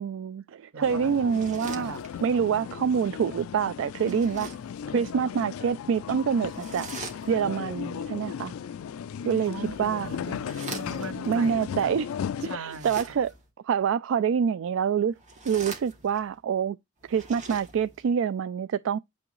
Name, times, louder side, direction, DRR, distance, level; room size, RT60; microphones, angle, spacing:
voice 1, 0.0-1.9 2.2-4.5 4.9-6.9 7.3-8.5 9.2-10.1 11.3-12.1 12.4-13.3 13.6-15.1 15.5-16.8 17.1-19.0, right 7 dB, 65° right, 0.3 m, -26 dB
voice 2, 0.7-1.1 1.7-2.0 9.5-12.0 12.5-13.0, right 4 dB, 85° right, 0.9 m, -40 dB
sound 1, 0.8-12.6, left 7 dB, 90° left, 0.3 m, -36 dB
sound 2, 1.2-2.4 3.9-4.8 6.5-7.6 9.4-11.3 12.6-13.5 15.1-16.3 17.0-18.1, right 3 dB, 35° right, 2.4 m, -43 dB
8.3 x 6.1 x 3.0 m
head